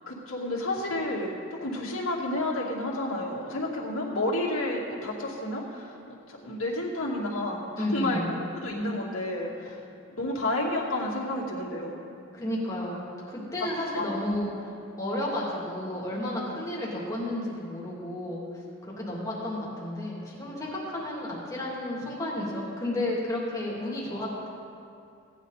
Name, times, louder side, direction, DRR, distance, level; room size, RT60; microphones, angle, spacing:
voice 1, 0.0-6.0 6.4-9.8 10.2-12.0 13.9-14.1, left 1 dB, 75° left, -4 dB, 2.5 m, -30 dB
voice 2, 7.8-8.3 12.3-13.0 13.3-14.7 15.0-18.4 18.8-24.5, left 1 dB, 15° left, -5 dB, 2.6 m, -32 dB
17.5 x 9.8 x 4.1 m, 2.5 s
head